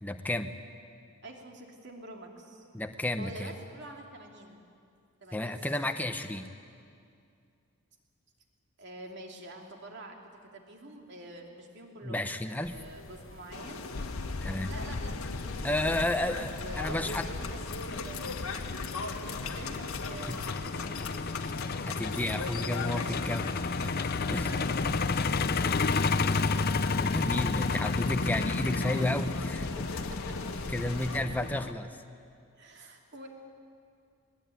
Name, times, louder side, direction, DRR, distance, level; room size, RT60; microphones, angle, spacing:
voice 1, 0.0-0.5 2.7-3.5 5.3-6.5 12.0-12.8 14.4-14.7 15.6-17.3 20.3-20.4 21.8-24.5 27.0-29.7 30.7-31.9, left 1 dB, 10° left, 7 dB, 0.8 m, -32 dB
voice 2, 1.2-2.7 3.2-4.6 5.2-5.7 8.8-12.3 12.7-13.8 14.6-16.0 16.6-18.3 19.1-21.2 22.6-23.3 24.5-26.4 28.9-29.1 29.8-30.6 30.8-31.3 32.6-33.3, right 1 dB, 50° right, 1 dB, 2.9 m, -47 dB
sound 1, 12.6-20.6, left 2 dB, 60° left, 1.1 m, -51 dB
sound 2, 13.5-31.2, left 4 dB, 75° left, 1.7 m, -40 dB
Truck, 13.9-31.7, left 4 dB, 45° left, 0.6 m, -32 dB
20.5 x 20.5 x 9.3 m, 2.4 s
head